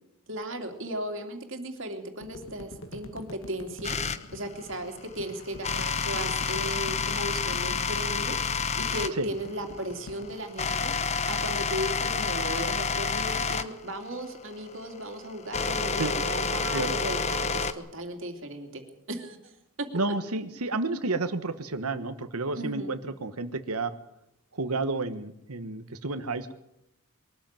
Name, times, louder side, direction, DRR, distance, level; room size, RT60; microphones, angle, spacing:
voice 1, 0.3-4.0 4.3-8.4 8.6-18.8 19.1-19.4 19.8-19.9 22.5-22.9, right 1 dB, 60° right, 4 dB, 2.8 m, -36 dB
sound 1, 2.2-10.4, left 1 dB, 65° left, 2.1 m, -46 dB
sound 2, 3.8-4.2 5.6-9.1 9.8-17.7, left 5 dB, 30° left, 0.9 m, -29 dB
voice 2, 19.9-23.9 24.5-26.5, right 3 dB, 85° right, 10 dB, 1.3 m, -31 dB
22.5 x 13.5 x 9.0 m, 0.85 s
head